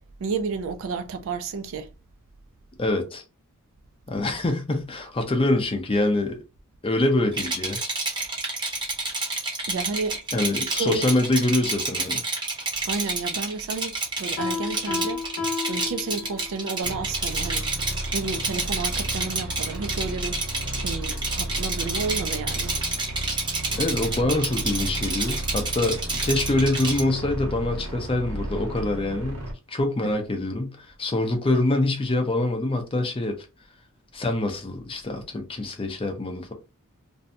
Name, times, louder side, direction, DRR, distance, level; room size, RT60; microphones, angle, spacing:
voice 1, 0.2-1.9 9.7-10.2 10.6-11.1 12.8-15.3 15.7-17.7 18.1-20.4 20.8-22.8, right 4 dB, 65° right, 0.4 m, -31 dB
voice 2, 2.8-3.2 4.1-6.4 6.8-7.8 10.3-12.2 23.7-33.4 34.1-36.5, left 2 dB, 25° left, 0.5 m, -25 dB
Rattle, 7.3-27.0, right 3 dB, 20° right, 0.7 m, -29 dB
Piano, 14.4-16.7, left 5 dB, 75° left, 0.8 m, -31 dB
sound 1, 16.8-29.5, right 1 dB, 90° right, 0.9 m, -33 dB
2.6 x 2.2 x 2.6 m
head